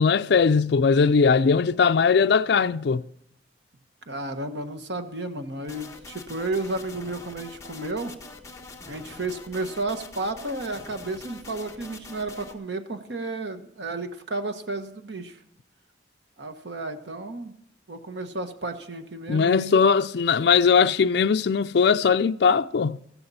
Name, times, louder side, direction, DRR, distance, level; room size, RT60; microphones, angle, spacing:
voice 1, 0.0-3.0 19.3-23.0, left 5 dB, 65° left, 0.4 m, -20 dB
voice 2, 4.1-8.1 8.9-15.4 16.4-17.5 17.9-19.8, right 2 dB, 75° right, 1.3 m, -32 dB
sound 1, 5.6-12.5, left 3 dB, 20° left, 1.3 m, -44 dB
15.0 x 14.5 x 4.2 m
head